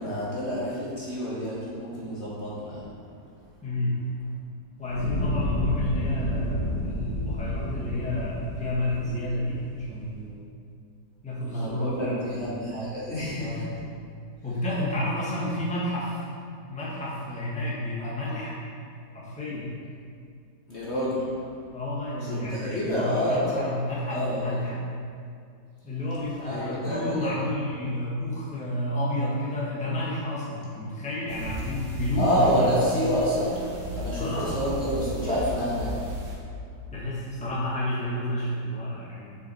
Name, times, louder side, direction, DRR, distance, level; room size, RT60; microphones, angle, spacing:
voice 1, 0.0-2.8 11.5-13.6 20.7-21.2 22.3-23.6 24.1-24.4 26.4-27.3 32.2-33.6 33.9-35.9, equal, 45° left, -7 dB, 1.5 m, -28 dB
voice 2, 3.6-4.0 4.8-10.7 11.2-12.7 13.4-13.7 14.4-16.3 16.7-18.6 19.1-19.7 21.7-24.8 25.8-32.8 34.1-34.6 36.9-39.3, left 1 dB, 5° left, -7 dB, 1.3 m, -30 dB
Fire, 4.8-10.0, left 1 dB, 65° left, 2.7 m, -30 dB
sound 1, 31.3-36.3, right 1 dB, 60° right, 1.6 m, -34 dB
7.6 x 6.0 x 4.4 m, 2.3 s
omnidirectional pair, 1.8 m